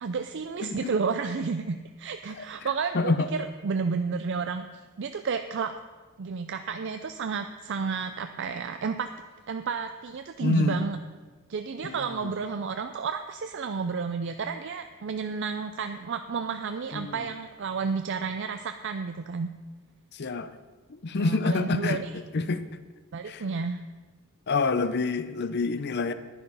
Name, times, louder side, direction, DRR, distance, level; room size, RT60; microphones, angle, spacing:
voice 1, 0.0-4.7 5.0-5.8 6.2-9.1 9.5-11.0 11.5-19.5 21.2-22.2 23.1-23.8, right 5 dB, 60° right, 8 dB, 0.5 m, -31 dB
voice 2, 0.6-0.9 2.9-3.3 10.4-10.8 11.8-12.0 16.9-17.2 20.1-20.5 20.9-22.0 22.3-22.6 23.3-23.4 24.5-26.1, left 3 dB, 50° left, 12 dB, 0.6 m, -27 dB
10.5 x 9.6 x 5.4 m, 1.3 s
head